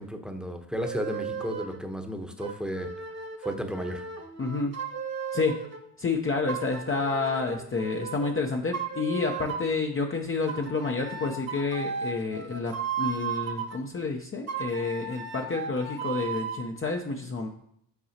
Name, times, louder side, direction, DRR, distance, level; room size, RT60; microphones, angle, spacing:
voice 1, 0.0-2.9 3.4-4.0, equal, ahead, 5 dB, 1.0 m, -33 dB
sound 1, 0.8-1.8 2.4-5.8 6.5-8.4 8.7-9.8 10.5-13.8 14.5-16.7, right 6 dB, 30° right, 1.3 m, -35 dB
voice 2, 4.4-4.7 5.3-5.5 6.0-17.5, left 3 dB, 25° left, 1 dB, 0.7 m, -29 dB
8.1 x 4.7 x 2.9 m, 0.73 s
hypercardioid pair, 50°, 50 cm